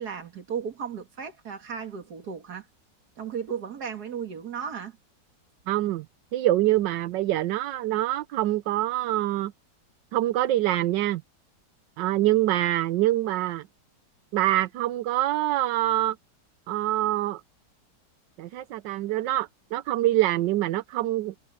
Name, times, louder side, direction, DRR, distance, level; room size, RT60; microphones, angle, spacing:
voice 1, 0.0-2.7 3.2-5.0, right 7 dB, 60° right, 2.5 m, -35 dB
voice 2, 5.7-6.0 6.3-9.5 10.1-11.2 12.0-13.6 14.3-16.2 16.7-17.4 18.4-21.3, right 15 dB, 80° right, 1.3 m, -25 dB
omnidirectional pair, 1.9 m